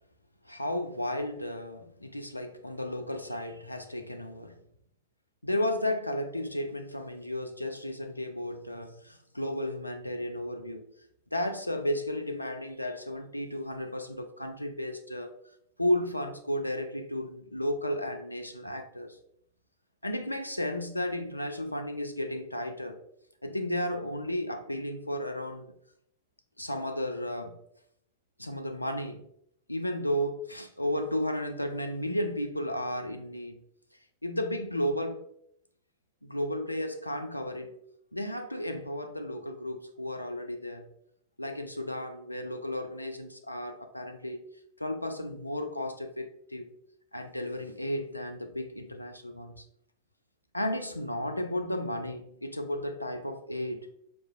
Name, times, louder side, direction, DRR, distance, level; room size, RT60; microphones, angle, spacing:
voice 1, 0.5-4.6 5.4-10.8 11.3-15.4 15.8-19.2 20.0-23.0 23.4-25.7 26.6-27.6 28.4-29.3 29.7-33.6 34.2-35.2 36.2-37.7 38.1-40.9 41.4-44.4 44.8-46.7 47.1-49.7 50.5-53.9, left 1 dB, 85° left, 0.3 m, -33 dB
4.7 x 2.4 x 2.3 m
figure-of-eight pair, 90°, 0 cm